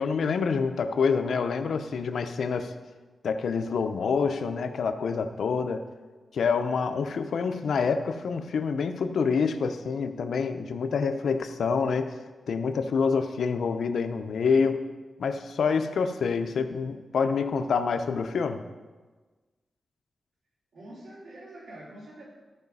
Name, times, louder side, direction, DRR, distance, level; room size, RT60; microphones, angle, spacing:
voice 1, 0.0-2.7 3.2-5.8 6.3-12.2 12.5-14.8 15.2-18.6, left 5 dB, 85° left, 8 dB, 0.6 m, -27 dB
voice 2, 20.7-22.2, right 1 dB, 80° right, -3 dB, 2.9 m, -45 dB
13.5 x 4.9 x 5.4 m, 1.3 s
wide cardioid pair, 110°, 0 cm